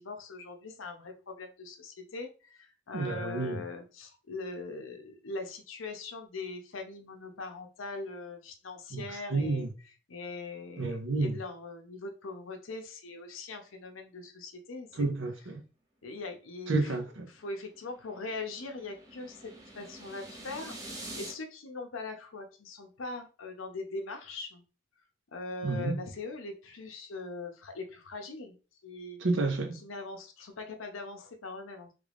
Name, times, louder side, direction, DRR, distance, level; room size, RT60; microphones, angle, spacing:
voice 1, 0.0-9.7 10.1-15.1 16.0-17.0 17.3-24.6 25.3-28.6 28.8-29.2 29.8-31.9, left 3 dB, 80° left, 0.7 m, -41 dB
voice 2, 2.9-3.6 8.9-9.7 10.8-11.4 14.9-15.6 16.7-17.3 25.6-26.0 29.2-29.8, right 3 dB, 65° right, 0.7 m, -30 dB
sound 1, 17.0-21.3, right 1 dB, 20° right, 0.8 m, -46 dB
3.3 x 2.4 x 3.4 m
head